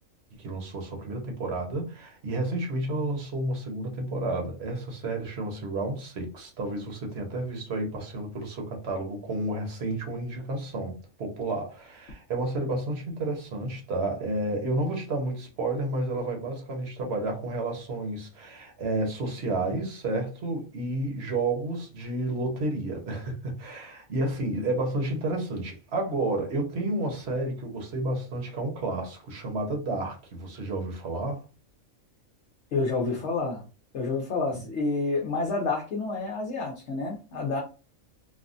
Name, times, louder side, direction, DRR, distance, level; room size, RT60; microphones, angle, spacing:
voice 1, 0.4-31.4, right 2 dB, 55° right, 1.1 m, -31 dB
voice 2, 32.7-33.6 33.9-37.6, left 3 dB, 60° left, 0.9 m, -29 dB
3.4 x 2.1 x 2.5 m
omnidirectional pair, 1.4 m